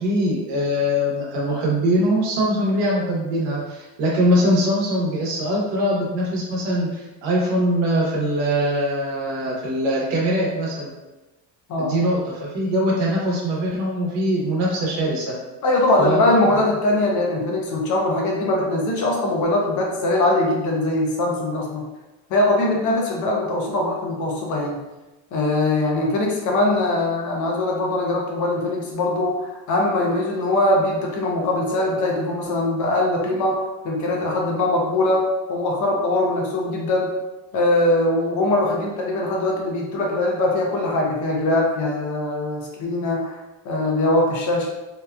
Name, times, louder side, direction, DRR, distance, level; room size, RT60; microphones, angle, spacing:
voice 1, 0.0-10.9 11.8-15.4 16.0-16.5, equal, 80° right, -3 dB, 0.9 m, -22 dB
voice 2, 15.6-21.8 22.3-24.8 25.3-37.1 37.5-43.4 43.6-44.7, left 2 dB, 45° left, -1 dB, 0.6 m, -21 dB
2.8 x 2.3 x 2.2 m, 1.1 s
cardioid pair, 150°, 43 cm